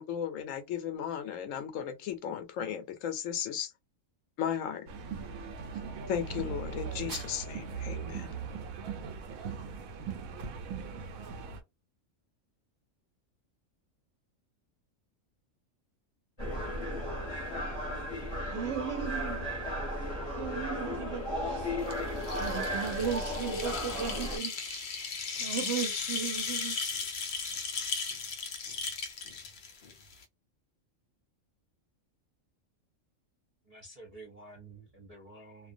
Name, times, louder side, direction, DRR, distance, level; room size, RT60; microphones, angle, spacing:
voice 1, 0.0-3.7 4.4-4.9 6.1-8.4, left 9 dB, 75° left, 0.9 m, -35 dB
sound 1, 4.9-11.6, right 6 dB, 90° right, 1.0 m, -39 dB
sound 2, 16.4-24.4, equal, 25° left, 0.8 m, -35 dB
voice 2, 18.4-19.5 20.4-21.8 22.4-24.9 25.4-26.8, right 8 dB, 65° right, 0.8 m, -36 dB
sound 3, 21.8-30.2, left 5 dB, 60° left, 0.5 m, -36 dB
voice 3, 33.7-35.7, right 2 dB, 40° right, 0.5 m, -50 dB
2.4 x 2.1 x 2.5 m
omnidirectional pair, 1.4 m